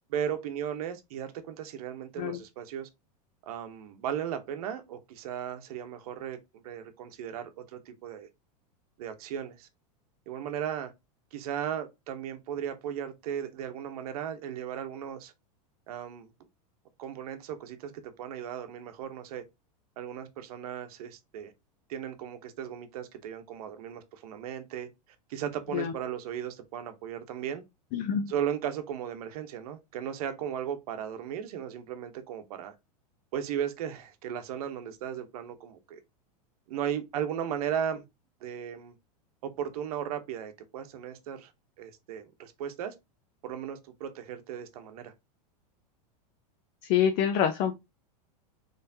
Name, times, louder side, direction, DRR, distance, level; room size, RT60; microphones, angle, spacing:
voice 1, 0.1-2.9 3.5-8.3 9.0-9.7 10.3-10.9 11.3-15.3 15.9-16.3 17.0-19.4 20.0-21.5 21.9-24.9 25.3-27.6 28.3-32.7 33.3-36.0 36.7-38.0 38.4-38.9 39.4-41.5 41.8-42.9 43.4-45.1, right 9 dB, 70° right, 0.8 m, -36 dB
voice 2, 27.9-28.3 46.9-47.7, left 9 dB, 40° left, 0.6 m, -26 dB
4.2 x 3.2 x 2.7 m
supercardioid pair, 145°, 20 cm